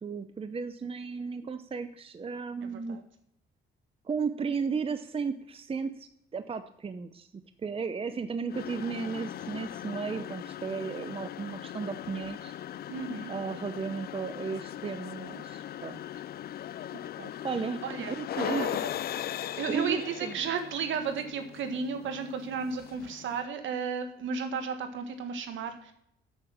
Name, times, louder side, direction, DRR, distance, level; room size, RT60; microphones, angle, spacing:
voice 1, 0.0-3.0 4.0-12.5 13.3-16.0 17.4-17.8 18.1-18.9 19.7-20.4, right 5 dB, 30° right, 10 dB, 0.7 m, -34 dB
voice 2, 2.6-3.0 12.9-13.3 16.9-17.3 17.8-18.7 19.4-25.9, right 6 dB, 75° right, 7 dB, 1.6 m, -34 dB
sound 1, 8.5-23.4, left 11 dB, 50° left, 0.4 m, -39 dB
8.0 x 6.7 x 7.4 m, 0.71 s
cardioid pair, 90°, 20 cm